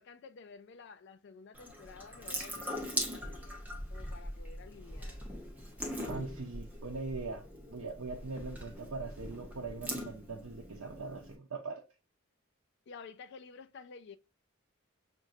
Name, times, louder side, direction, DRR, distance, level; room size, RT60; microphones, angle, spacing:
voice 1, 0.0-5.3 5.8-5.9 12.9-14.2, left 5 dB, 55° left, 0.4 m, -52 dB
Water tap faucet / Sink (filling or washing) / Drip, 1.5-11.3, equal, 10° right, 0.8 m, -41 dB
voice 2, 6.0-11.8, right 3 dB, 80° right, 0.7 m, -41 dB
6.0 x 2.6 x 2.5 m
head